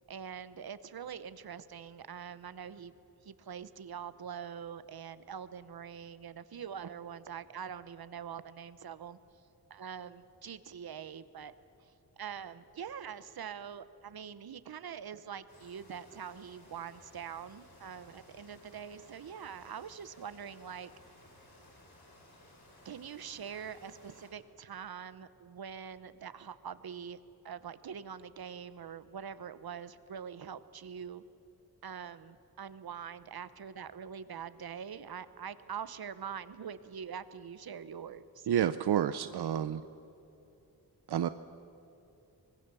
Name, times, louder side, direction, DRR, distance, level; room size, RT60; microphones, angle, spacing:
voice 1, 0.1-2.9 3.2-9.2 9.7-11.5 11.8-20.9 22.8-27.2 27.4-31.2 31.8-38.5, right 7 dB, 70° right, 14 dB, 1.0 m, -44 dB
sound 1, 15.5-24.3, left 1 dB, 75° left, 5.2 m, -58 dB
voice 2, 38.5-39.9 41.1-41.3, right 10 dB, 90° right, 12 dB, 0.6 m, -29 dB
25.0 x 21.0 x 6.9 m, 2.9 s
wide cardioid pair, 110°, 38 cm